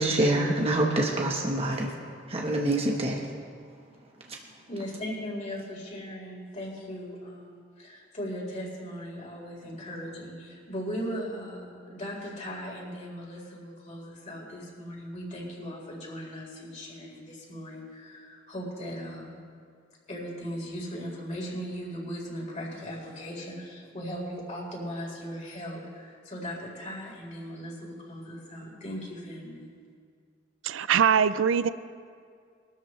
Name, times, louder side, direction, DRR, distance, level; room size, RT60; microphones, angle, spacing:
voice 1, 0.0-1.9 2.3-3.2, right 1 dB, 30° right, -1 dB, 1.2 m, -25 dB
voice 2, 4.7-19.3 20.1-29.7, equal, 40° left, -4 dB, 4.3 m, -38 dB
voice 3, 30.6-31.7, right 7 dB, 75° right, 15 dB, 0.4 m, -22 dB
22.5 x 13.0 x 3.3 m, 2.2 s
head